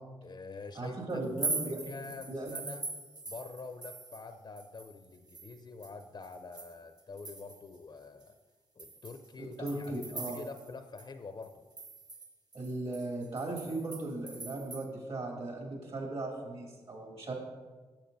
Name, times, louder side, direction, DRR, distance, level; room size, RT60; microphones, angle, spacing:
voice 1, 0.2-1.2 1.7-2.8 3.3-8.3 8.8-11.7, left 4 dB, 40° left, 9 dB, 0.5 m, -46 dB
voice 2, 0.7-1.8 2.3-2.6 9.4-10.4 12.5-17.3, right 2 dB, 60° right, 0 dB, 2.4 m, -37 dB
sound 1, 1.2-4.3 4.6-7.8 8.2-8.3 8.8-10.7 11.0-11.1 11.4-14.8, right 3 dB, 35° right, 1.1 m, -42 dB
10.5 x 7.2 x 2.6 m, 1.3 s
supercardioid pair, 45°, 12 cm